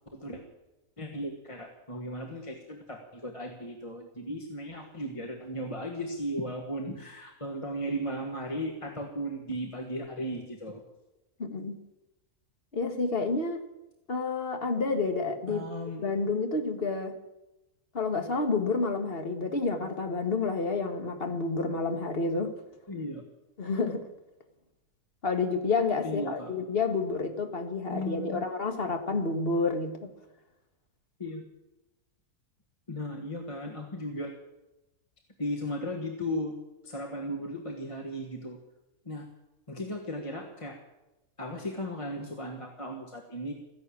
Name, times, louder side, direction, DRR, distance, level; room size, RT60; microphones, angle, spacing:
voice 1, 0.1-0.4 1.0-10.8 15.5-16.0 22.9-23.2 26.0-26.5 27.9-28.4 31.2-31.5 32.9-34.3 35.4-36.6 36.8-38.6 39.0-39.3 39.7-40.8 41.4-43.5, equal, 20° left, 2 dB, 1.5 m, -36 dB
voice 2, 11.4-11.8 12.7-13.6 14.1-15.6 16.0-17.1 17.9-22.5 23.6-24.0 25.2-30.1, left 3 dB, 40° left, 6 dB, 1.8 m, -29 dB
14.5 x 11.0 x 8.6 m, 0.98 s
omnidirectional pair, 1.6 m